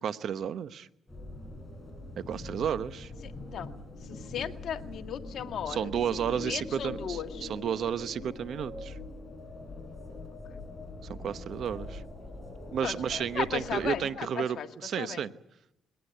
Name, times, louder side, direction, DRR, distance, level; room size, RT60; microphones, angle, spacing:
voice 1, 0.0-0.9 2.3-3.1 5.7-9.0 11.1-12.0 12.7-15.3, right 8 dB, 65° right, 13 dB, 1.0 m, -32 dB
sound 1, 1.1-14.0, left 2 dB, 15° left, 7.7 m, -43 dB
voice 2, 4.1-5.9 6.3-7.5 10.5-10.6 12.8-14.7 15.0-15.2, left 9 dB, 65° left, 6 dB, 1.8 m, -36 dB
22.0 x 18.0 x 9.5 m, 0.83 s
cardioid pair, 90°, 0 cm